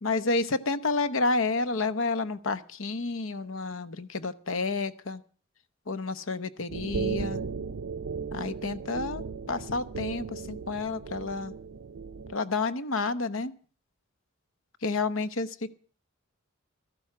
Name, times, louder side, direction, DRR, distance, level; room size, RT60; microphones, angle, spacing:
voice 1, 0.0-5.2 5.9-7.4 8.3-11.5 12.3-13.5 14.8-15.7, left 3 dB, 65° left, 12 dB, 1.0 m, -30 dB
sound 1, 6.7-12.3, right 5 dB, 70° right, 0.6 m, -36 dB
14.0 x 12.0 x 5.9 m, 0.42 s
head